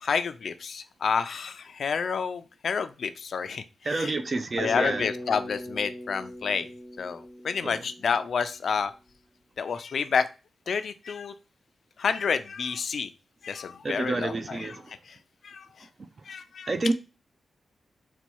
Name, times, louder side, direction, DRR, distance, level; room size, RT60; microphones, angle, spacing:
voice 1, 0.0-4.2 4.6-6.7 7.0-8.9 9.6-10.2 10.7-11.3 12.0-13.1 13.4-15.2 15.4-15.7 16.3-16.9, left 6 dB, 60° left, 0.4 m, -29 dB
voice 2, 3.8-5.0 7.6-7.8 13.8-14.8 16.7-16.9, right 3 dB, 35° right, 0.4 m, -28 dB
Bass guitar, 4.6-8.7, left 1 dB, 60° right, 2.0 m, -40 dB
4.1 x 2.3 x 4.5 m
wide cardioid pair, 125°, 0 cm